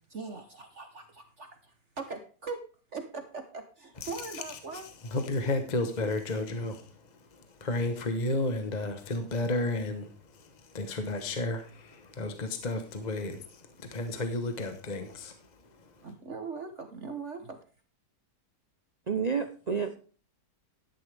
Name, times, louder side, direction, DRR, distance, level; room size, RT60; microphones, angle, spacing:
voice 1, 0.1-2.6 2.9-4.9 16.0-17.6, right 4 dB, 45° right, 6 dB, 1.3 m, -40 dB
voice 2, 4.0-16.1, left 2 dB, 30° left, 7 dB, 1.0 m, -33 dB
voice 3, 19.1-20.0, right 6 dB, 65° right, 8 dB, 0.4 m, -29 dB
12.0 x 10.5 x 3.4 m, 0.40 s
omnidirectional pair, 1.9 m